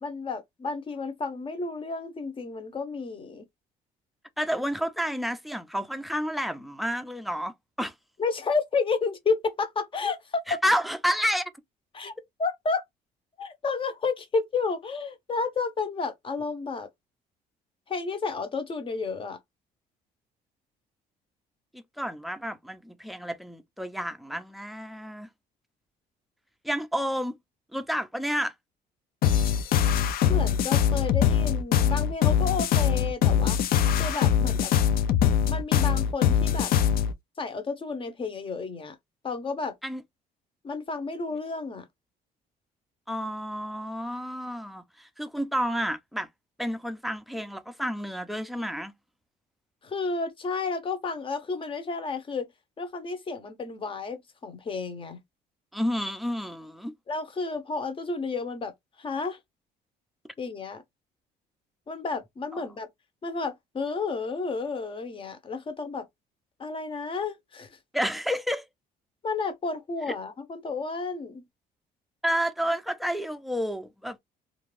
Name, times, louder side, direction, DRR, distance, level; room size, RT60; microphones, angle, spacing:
voice 1, 0.0-3.5 8.2-10.4 11.9-12.1 12.4-12.8 13.4-16.9 17.9-19.4 30.3-33.6 34.0-34.7 35.5-36.7 37.4-39.0 39.2-39.7 40.6-41.9 49.8-52.5 52.8-55.2 57.1-58.7 59.0-59.4 60.4-60.8 61.9-62.9 63.2-66.1 66.6-67.7 69.2-71.4, left 4 dB, 30° left, 0.8 m, -31 dB
voice 2, 4.4-7.9 10.5-11.4 21.7-25.3 26.6-27.4 27.7-28.5 39.8-40.0 43.1-46.3 46.6-48.9 55.7-56.9 62.5-62.6 67.9-68.6 72.2-74.2, equal, ahead, 0.4 m, -30 dB
sound 1, 29.2-37.1, left 8 dB, 60° left, 0.4 m, -22 dB
2.5 x 2.2 x 3.2 m
cardioid pair, 110°, 17 cm